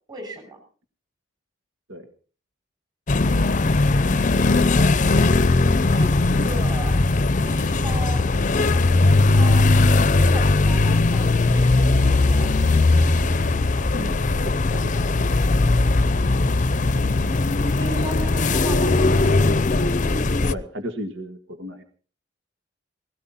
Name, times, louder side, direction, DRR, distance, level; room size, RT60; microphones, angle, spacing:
voice 1, 0.1-0.6 5.9-7.0 7.3-8.2 9.2-12.5 17.7-19.0, right 2 dB, 20° right, 5 dB, 6.6 m, -37 dB
sound 1, 3.1-20.5, left 2 dB, 40° left, 0.7 m, -19 dB
voice 2, 13.9-15.3 20.4-21.8, equal, 80° right, 6 dB, 1.9 m, -34 dB
18.0 x 17.5 x 4.3 m, 0.40 s
head